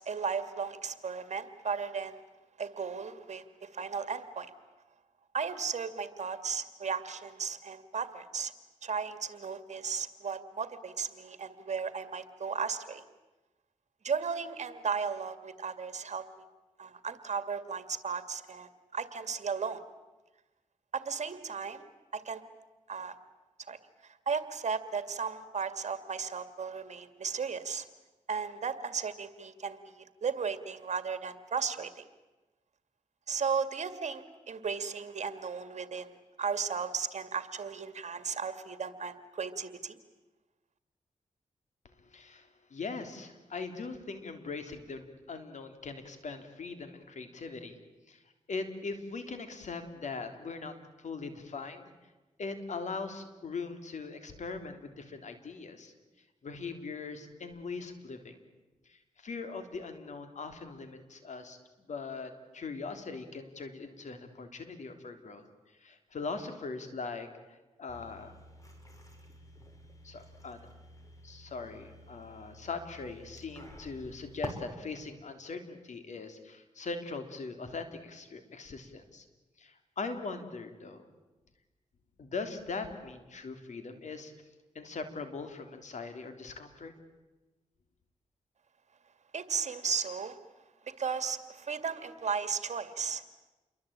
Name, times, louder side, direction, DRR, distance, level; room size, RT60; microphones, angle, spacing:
voice 1, 0.0-2.2 2.6-4.5 5.3-8.5 8.8-13.0 14.0-16.2 16.8-19.8 20.9-21.8 22.1-22.4 22.9-23.1 23.7-27.9 28.3-32.0 33.3-40.0 89.3-90.4 90.9-93.3, right 6 dB, 65° right, 11 dB, 2.1 m, -35 dB
voice 2, 42.0-47.8 48.1-48.2 48.5-51.9 52.4-55.9 56.4-58.4 58.9-61.6 61.9-65.5 65.8-68.3 70.0-70.6 71.2-79.3 79.6-81.0 82.2-84.3 84.8-86.9, left 4 dB, 70° left, 8 dB, 3.5 m, -41 dB
sound 1, 67.9-74.5, left 1 dB, 25° left, 5.8 m, -50 dB
28.5 x 23.0 x 8.9 m, 1.1 s
cardioid pair, 70°, 13 cm